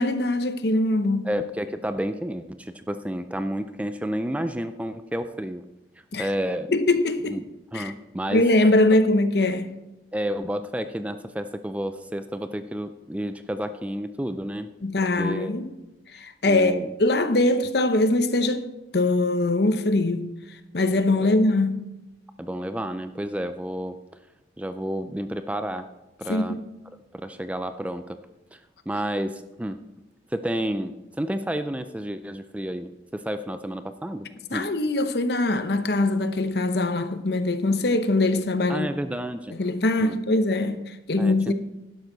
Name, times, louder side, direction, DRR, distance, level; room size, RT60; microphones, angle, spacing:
voice 1, 0.0-1.3 6.1-6.3 6.7-7.4 7.7-7.9 8.3-9.7 14.8-15.7 16.1-16.7 17.0-18.7 18.9-20.3 20.7-21.8 26.3-26.6 34.5-38.9 39.5-41.5, left 2 dB, 60° left, 0.8 m, -22 dB
voice 2, 1.2-5.6 6.2-6.7 7.3-7.4 7.7-8.4 8.9-9.0 10.1-14.7 15.0-15.6 16.4-16.9 21.2-21.4 22.4-24.0 24.6-25.9 26.2-26.6 27.1-28.2 28.5-28.6 28.9-29.8 30.3-34.7 38.7-39.6 40.0-40.2 41.2-41.5, equal, 5° right, 0.4 m, -30 dB
11.5 x 10.5 x 3.9 m
head